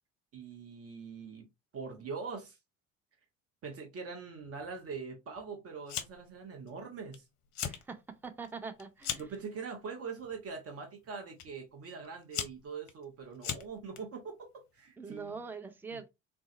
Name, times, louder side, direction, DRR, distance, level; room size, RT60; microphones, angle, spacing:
voice 1, 0.3-1.5 1.7-2.6 3.6-7.2 9.2-15.5, right 5 dB, 35° right, 1.0 m, -43 dB
Fire, 5.9-6.4 6.7-7.2 7.5-7.8 8.2-9.4 10.2-10.5 11.4-11.5 12.0-14.0, left 9 dB, 45° left, 0.6 m, -38 dB
voice 2, 7.6-9.2 15.0-16.1, right 5 dB, 5° right, 0.4 m, -43 dB
3.8 x 2.4 x 2.5 m
figure-of-eight pair, 60°, 39 cm